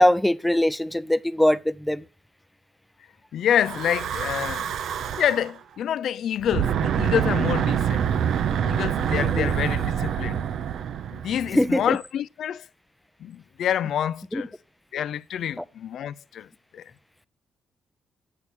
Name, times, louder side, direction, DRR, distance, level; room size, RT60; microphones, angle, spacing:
voice 1, 0.0-2.0 9.1-9.5 11.5-12.0 14.3-14.4 15.6-15.7, left 1 dB, 5° left, 0.5 m, -22 dB
voice 2, 3.3-4.8 5.2-8.2 8.5-10.5 11.1-12.7 13.2-14.5 14.9-16.5 16.7-16.8, left 10 dB, 70° left, 0.4 m, -27 dB
Breathing / Wind, 3.5-5.5 6.4-11.8, right 9 dB, 70° right, 0.5 m, -26 dB
8.4 x 6.6 x 4.2 m
cardioid pair, 90°, 0 cm